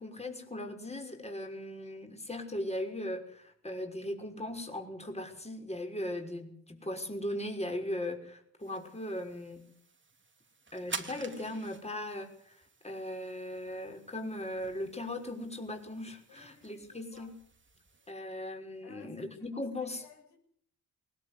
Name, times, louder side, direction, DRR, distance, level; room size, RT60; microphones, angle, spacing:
voice 1, 0.0-9.6 10.7-17.3 18.1-20.0, left 1 dB, 15° left, 5.9 m, -38 dB
sound 1, 8.6-18.1, right 4 dB, 30° right, 2.9 m, -49 dB
voice 2, 16.3-17.3 18.8-20.4, left 6 dB, 80° left, 6.7 m, -58 dB
20.5 x 18.5 x 8.3 m
hypercardioid pair, 50°, 40 cm